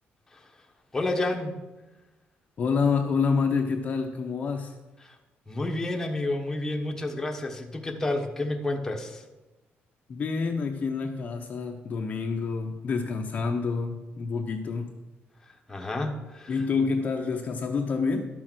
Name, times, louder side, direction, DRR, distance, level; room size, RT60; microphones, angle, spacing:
voice 1, 0.9-1.6 5.0-5.2 5.5-9.2 15.7-16.6, left 2 dB, 10° left, 2 dB, 1.0 m, -30 dB
voice 2, 2.6-4.7 10.1-14.9 16.5-18.3, left 5 dB, 35° left, 3 dB, 0.7 m, -27 dB
12.0 x 6.5 x 6.1 m, 1.1 s
cardioid pair, 180°, 4 cm